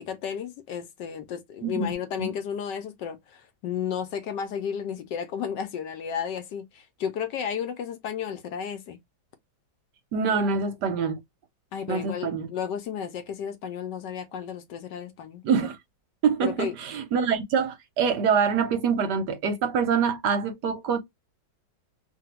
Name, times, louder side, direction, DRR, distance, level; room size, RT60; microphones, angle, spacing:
voice 1, 0.0-9.0 11.7-15.4 16.4-16.7, left 8 dB, 70° left, 1.1 m, -33 dB
voice 2, 10.1-11.2 11.9-12.5 15.4-15.8 16.2-21.0, right 6 dB, 70° right, 1.1 m, -25 dB
2.8 x 2.7 x 2.9 m
omnidirectional pair, 2.1 m